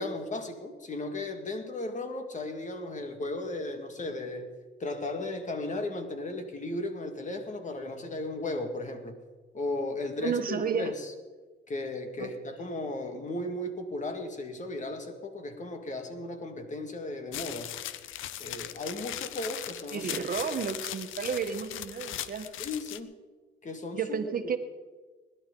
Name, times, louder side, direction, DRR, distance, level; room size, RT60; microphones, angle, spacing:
voice 1, 0.0-4.5 4.8-9.2 9.5-11.1 11.7-17.8 18.4-20.2 20.6-20.7 22.6-23.1 23.6-24.6, left 2 dB, 40° left, 6 dB, 2.0 m, -35 dB
voice 2, 10.2-10.9 12.2-12.3 12.6-12.7 19.9-22.5 23.9-24.6, right 6 dB, 45° right, 8 dB, 1.4 m, -32 dB
sound 1, 17.3-23.0, left 12 dB, 80° left, 0.6 m, -39 dB
20.5 x 11.5 x 3.9 m, 1.3 s
cardioid pair, 90°, 20 cm